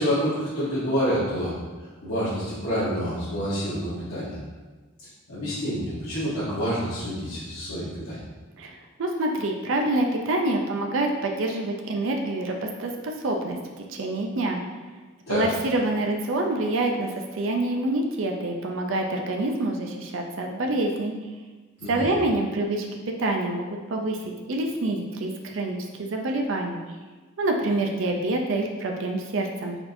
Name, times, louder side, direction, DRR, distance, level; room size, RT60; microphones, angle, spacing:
voice 1, 0.0-1.6 2.0-4.4 5.0-8.2 15.3-15.5 21.8-22.1, equal, 85° left, -12 dB, 1.2 m, -28 dB
voice 2, 8.6-12.9 13.2-13.6 13.9-14.6 15.3-21.1 21.9-26.8 27.4-29.8, right 2 dB, 65° right, 2 dB, 0.4 m, -26 dB
4.3 x 4.2 x 2.6 m, 1.3 s
head